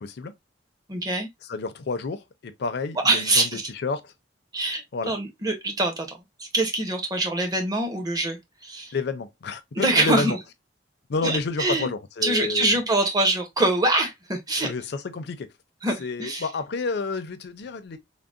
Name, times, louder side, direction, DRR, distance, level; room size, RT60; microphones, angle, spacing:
voice 1, 0.0-0.3 1.5-4.1 4.9-5.1 8.9-10.4 11.1-12.7 14.6-15.5 16.0-18.0, left 4 dB, 60° left, 0.4 m, -30 dB
voice 2, 0.9-1.3 3.0-3.6 4.5-8.9 9.7-10.4 11.2-11.9 12.2-14.7 15.8-16.4, right 2 dB, 20° right, 0.7 m, -24 dB
3.6 x 2.0 x 2.4 m
head